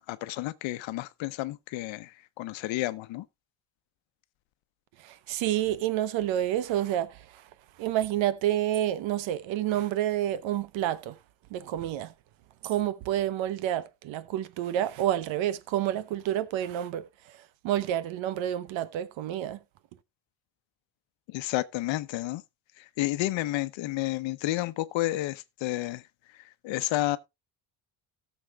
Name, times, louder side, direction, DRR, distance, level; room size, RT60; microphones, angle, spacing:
voice 1, 0.0-3.2 21.3-22.4 22.8-26.0 26.6-27.2, left 16 dB, 80° left, 0.9 m, -31 dB
voice 2, 5.0-7.5 7.7-11.2 11.5-12.1 12.6-19.6, right 12 dB, 85° right, 1.0 m, -29 dB
17.5 x 7.2 x 2.4 m
cardioid pair, 135°, 45 cm